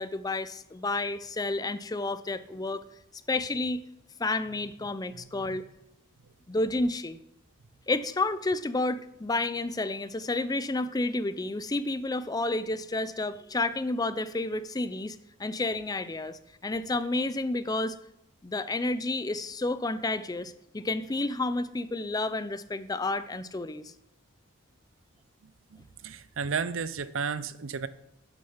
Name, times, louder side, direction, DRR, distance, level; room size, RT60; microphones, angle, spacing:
voice 1, 0.0-2.8 3.3-3.8 4.2-5.6 6.5-7.2 7.9-18.0 18.4-23.9, left 2 dB, 20° left, 13 dB, 0.4 m, -30 dB
voice 2, 25.7-27.9, right 5 dB, 75° right, 15 dB, 0.6 m, -33 dB
11.0 x 6.4 x 5.7 m, 0.84 s
head